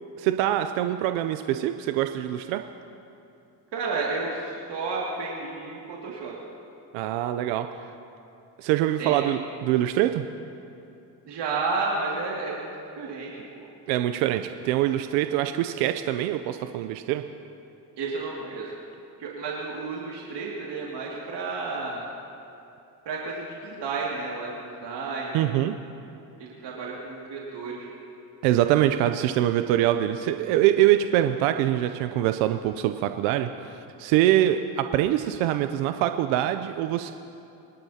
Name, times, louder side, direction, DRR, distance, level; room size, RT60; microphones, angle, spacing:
voice 1, 0.2-2.6 6.9-7.9 8.6-10.2 13.9-17.2 25.3-25.8 28.4-37.1, right 12 dB, 85° right, 8 dB, 0.7 m, -24 dB
voice 2, 3.7-6.3 9.0-9.3 11.3-12.7 13.0-13.4 18.0-18.7 19.2-22.1 23.1-25.5 26.4-27.9, right 3 dB, 60° right, -4 dB, 2.4 m, -32 dB
24.5 x 11.5 x 2.8 m, 2.7 s
hypercardioid pair, 60°, 46 cm